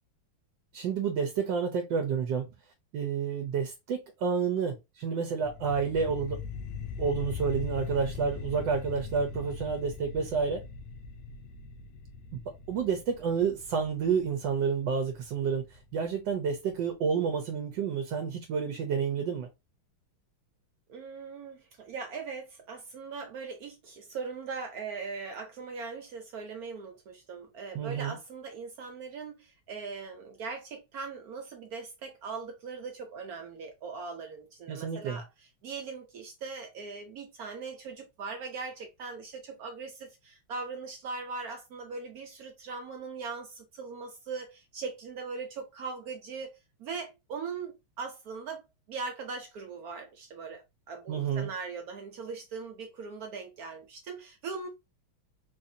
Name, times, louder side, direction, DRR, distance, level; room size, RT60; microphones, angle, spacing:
voice 1, 0.7-2.5 2.9-6.4 7.0-10.6 12.3-12.4 12.7-15.7 15.9-19.5 27.7-28.2 34.7-35.2 51.1-51.5, right 6 dB, 70° right, 1.2 m, -29 dB
sound 1, 5.4-16.5, left 5 dB, 85° left, 1.5 m, -41 dB
voice 2, 20.9-54.7, right 4 dB, 85° right, 0.8 m, -40 dB
4.0 x 2.7 x 2.6 m
omnidirectional pair, 2.4 m